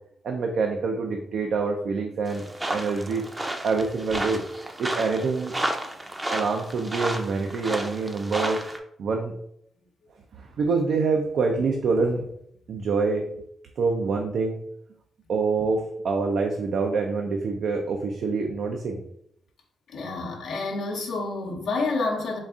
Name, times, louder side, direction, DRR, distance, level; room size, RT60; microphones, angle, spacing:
voice 1, 0.2-3.2 3.6-4.4 4.8-5.6 6.3-8.6 9.0-9.3 10.4-12.3 12.7-13.3 13.8-14.6 15.3-19.0, right 4 dB, 70° right, 2 dB, 0.4 m, -26 dB
sound 1, 2.3-8.8, right 1 dB, 15° right, 0.5 m, -32 dB
voice 2, 19.9-22.4, left 3 dB, 80° left, -1 dB, 0.8 m, -29 dB
3.9 x 2.4 x 3.6 m, 0.72 s
cardioid pair, 80°, 0 cm